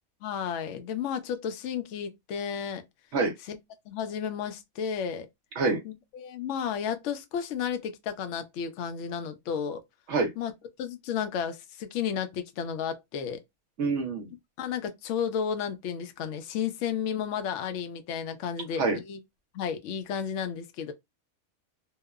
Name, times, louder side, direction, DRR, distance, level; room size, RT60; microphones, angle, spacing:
voice 1, 0.2-2.8 3.5-3.6 3.9-5.3 5.8-9.8 10.4-10.5 10.8-13.4 14.6-19.2 19.5-20.9, left 7 dB, 70° left, 0.8 m, -32 dB
voice 2, 13.8-14.3 18.8-19.0, right 3 dB, 65° right, 0.8 m, -26 dB
2.8 x 2.0 x 2.3 m
omnidirectional pair, 1.5 m